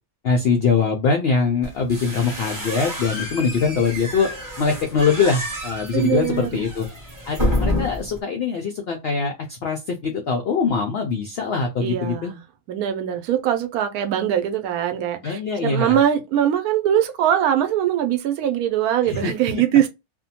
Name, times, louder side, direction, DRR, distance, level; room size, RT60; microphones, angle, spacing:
voice 1, 0.2-4.3 4.6-6.9 7.2-12.3 15.2-16.0 19.0-19.6, left 5 dB, 75° left, 0.5 m, -23 dB
sound 1, 1.6-8.2, left 1 dB, 20° right, 0.7 m, -29 dB
voice 2, 5.9-6.6 11.8-12.4 12.7-19.9, right 10 dB, 80° right, 1.0 m, -22 dB
2.6 x 2.1 x 2.7 m
omnidirectional pair, 1.6 m